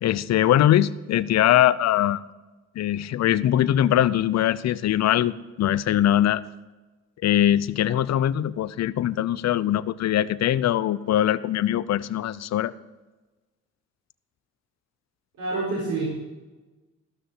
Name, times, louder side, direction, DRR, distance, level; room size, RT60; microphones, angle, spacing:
voice 1, 0.0-2.2 2.8-6.4 7.2-12.7, left 12 dB, 60° left, 17 dB, 0.6 m, -22 dB
voice 2, 15.4-16.1, right 3 dB, 75° right, -6 dB, 4.3 m, -27 dB
14.5 x 6.5 x 6.3 m, 1.2 s
cardioid pair, 90°, 30 cm